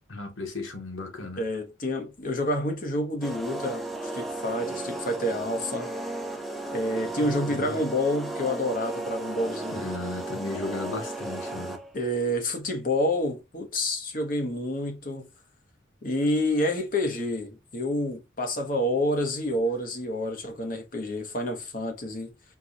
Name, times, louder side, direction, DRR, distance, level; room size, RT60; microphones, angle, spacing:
voice 1, 0.1-1.4 7.2-7.7 9.7-11.8, left 2 dB, 80° left, 1.4 m, -35 dB
voice 2, 1.2-3.8 4.1-5.9 6.7-9.9 11.9-15.3 16.0-22.3, left 1 dB, 45° left, 1.1 m, -28 dB
sound 1, 3.2-12.0, right 2 dB, ahead, 0.6 m, -35 dB
4.6 x 2.4 x 4.1 m
head